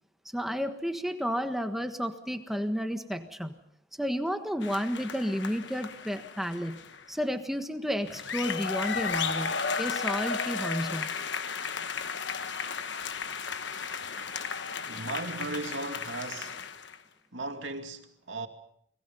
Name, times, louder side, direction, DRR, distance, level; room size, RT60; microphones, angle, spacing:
voice 1, 0.3-3.6 4.0-11.1, equal, ahead, 1.4 m, -32 dB
sound 1, 4.6-7.1 8.0-17.0, left 5 dB, 70° left, 1.3 m, -34 dB
voice 2, 14.8-16.6 17.3-18.5, right 2 dB, 85° right, 2.5 m, -36 dB
30.0 x 21.5 x 5.6 m
head